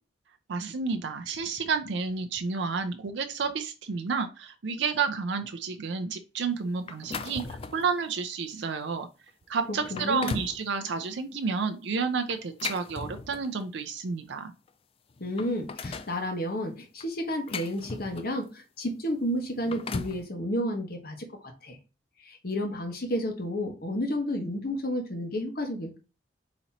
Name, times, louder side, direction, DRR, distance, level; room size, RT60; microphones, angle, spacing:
voice 1, 0.5-9.1 9.5-14.5, right 5 dB, 70° right, 8 dB, 0.5 m, -30 dB
sound 1, 6.9-7.9 8.5-8.7 9.3-9.4 9.8-10.6 12.3-13.6 14.7-14.8 15.1-16.2 17.0-18.4 19.4-20.2, left 4 dB, 30° left, 0.4 m, -37 dB
voice 2, 9.7-10.4 15.2-21.3 21.6-21.8 22.2-26.0, equal, 50° left, 4 dB, 1.2 m, -31 dB
4.1 x 2.9 x 4.2 m, 0.31 s
head